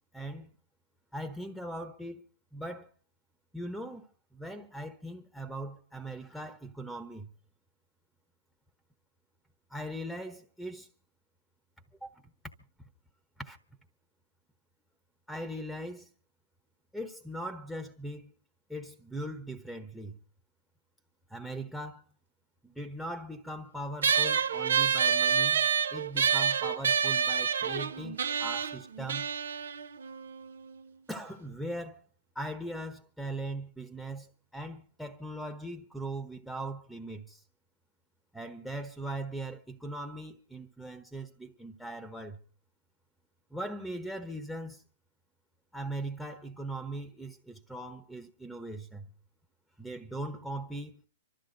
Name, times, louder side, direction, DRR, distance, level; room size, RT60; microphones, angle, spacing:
voice 1, 0.1-0.5 1.1-2.2 2.5-2.9 3.5-4.1 4.3-7.3 9.7-10.9 12.0-12.3 13.4-13.6 15.3-16.1 16.9-18.3 18.7-20.2 21.3-22.0 22.6-29.3 31.1-32.0 32.3-34.3 34.5-37.4 38.3-42.4 43.5-44.8 45.7-49.1 49.8-51.0, right 1 dB, ahead, 1.1 m, -40 dB
sound 1, 24.0-30.8, right 7 dB, 80° right, 1.0 m, -28 dB
26.0 x 13.0 x 4.0 m
hypercardioid pair, 130°, 0 cm